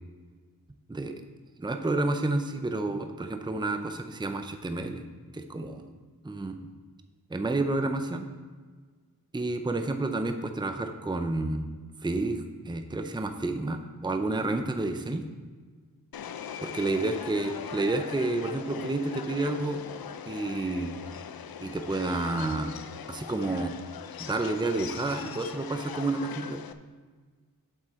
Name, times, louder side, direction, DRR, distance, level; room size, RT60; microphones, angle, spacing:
voice 1, 1.6-5.0 5.3-5.9 6.2-6.6 7.3-8.3 9.3-11.7 12.0-15.2 16.6-19.8 20.3-20.9 21.6-22.7 23.1-23.7 24.2-26.6, right 2 dB, 10° right, 6 dB, 0.6 m, -30 dB
Subway metro underground, 16.1-26.7, left 8 dB, 70° left, 0.5 m, -40 dB
7.9 x 7.5 x 4.3 m, 1.5 s
wide cardioid pair, 80°, 37 cm